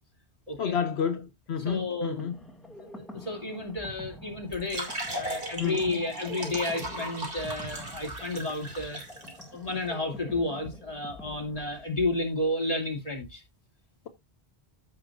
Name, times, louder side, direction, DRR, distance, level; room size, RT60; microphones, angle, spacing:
voice 1, 0.6-2.4 5.6-6.0, left 7 dB, 80° left, 1.0 m, -30 dB
voice 2, 1.6-2.3 2.8-9.0 9.5-13.4, left 2 dB, 35° left, 2.6 m, -32 dB
sound 1, 1.7-12.3, equal, ahead, 2.0 m, -46 dB
sound 2, 4.5-9.4, right 1 dB, 60° right, 2.9 m, -37 dB
14.5 x 6.1 x 2.5 m
omnidirectional pair, 1.1 m